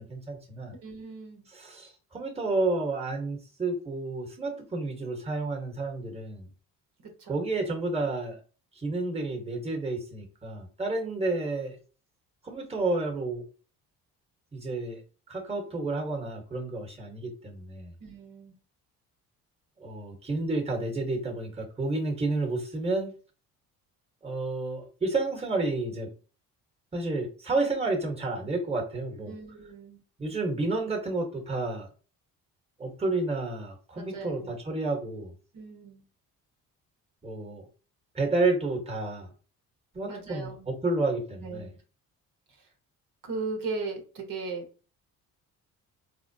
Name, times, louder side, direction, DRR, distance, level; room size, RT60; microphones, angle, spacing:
voice 1, 0.0-0.7 1.5-6.5 7.3-8.4 8.8-11.8 12.4-13.4 14.5-15.0 15.3-17.9 19.8-23.1 24.2-26.1 26.9-29.3 30.2-31.9 32.8-35.3 37.2-37.6 38.1-39.3 39.9-41.7, right 2 dB, 15° right, 1.1 m, -30 dB
voice 2, 0.7-1.5 7.0-7.5 18.0-18.6 29.2-30.0 33.9-34.5 35.5-36.0 40.1-40.7 41.4-41.7 42.5-42.7 43.2-44.6, right 3 dB, 65° right, 1.1 m, -38 dB
4.2 x 2.1 x 2.7 m
supercardioid pair, 75°, 36 cm